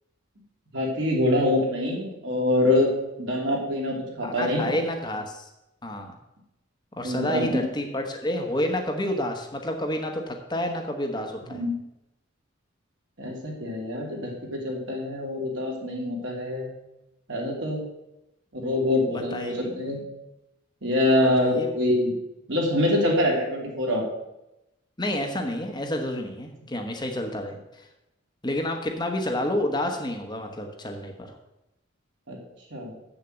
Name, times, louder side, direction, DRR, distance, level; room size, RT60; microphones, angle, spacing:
voice 1, 0.7-2.9 3.2-4.7 7.0-7.6 11.5-11.7 13.2-16.7 17.3-17.8 18.5-20.0 20.8-22.1 22.5-24.0 32.3-32.4 32.7-32.9, left 1 dB, 65° right, -2 dB, 2.9 m, -25 dB
voice 2, 4.2-5.5 5.8-6.1 6.9-11.6 19.1-19.8 21.4-21.7 25.0-27.9 28.4-31.3, left 1 dB, 20° left, 3 dB, 1.0 m, -29 dB
7.5 x 6.9 x 7.8 m, 0.91 s
head